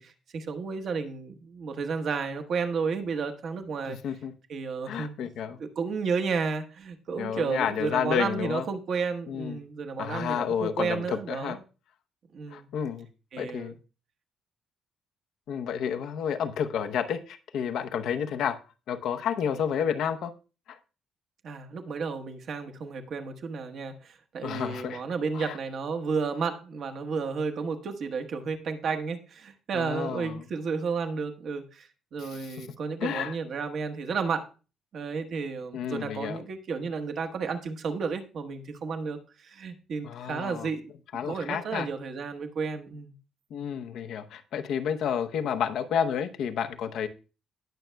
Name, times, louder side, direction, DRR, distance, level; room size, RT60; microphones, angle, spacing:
voice 1, 0.0-4.0 4.5-5.1 5.6-11.6 12.3-12.7 13.3-13.7 21.4-34.5 34.9-40.9 41.2-43.1, right 5 dB, 50° right, 6 dB, 1.1 m, -32 dB
voice 2, 3.8-4.3 4.9-5.6 7.2-8.7 9.3-9.7 10.0-11.6 12.5-13.1 13.4-13.8 15.5-18.6 18.9-20.3 20.7-20.8 24.4-25.0 25.3-25.6 29.7-30.4 32.2-32.7 33.0-33.4 35.7-36.4 40.0-40.7 41.1-41.9 43.5-47.1, left 8 dB, 65° left, 8 dB, 0.7 m, -30 dB
18.0 x 6.3 x 2.2 m, 0.33 s
cardioid pair, 140°, 0 cm